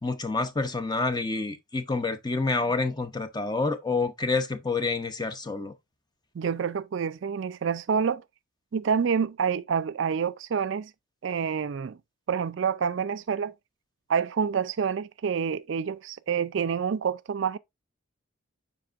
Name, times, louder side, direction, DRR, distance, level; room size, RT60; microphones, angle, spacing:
voice 1, 0.0-5.7, left 3 dB, 20° left, 0.6 m, -28 dB
voice 2, 6.3-8.2 8.7-10.9 11.2-12.0 12.3-13.5 14.1-17.6, right 6 dB, 55° right, 0.3 m, -27 dB
7.6 x 5.2 x 2.4 m
head